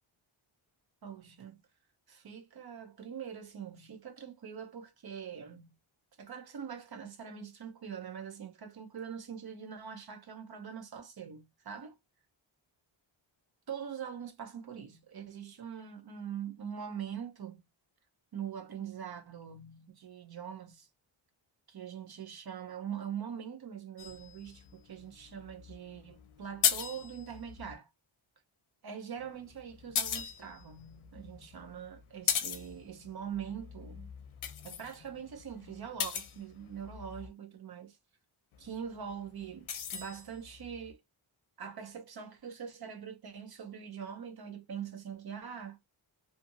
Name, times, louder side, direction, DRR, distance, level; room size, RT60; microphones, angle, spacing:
voice 1, 1.0-1.6 2.1-5.7 6.2-12.0 13.7-17.6 18.3-20.9 21.7-27.9 28.8-34.1 34.6-38.0 38.6-41.0 41.6-45.8, right 8 dB, 50° right, 0.7 m, -43 dB
sound 1, 24.0-27.7 29.2-37.3 38.5-40.9, left 8 dB, 80° left, 0.6 m, -38 dB
2.6 x 2.5 x 2.6 m
wide cardioid pair, 170°, 49 cm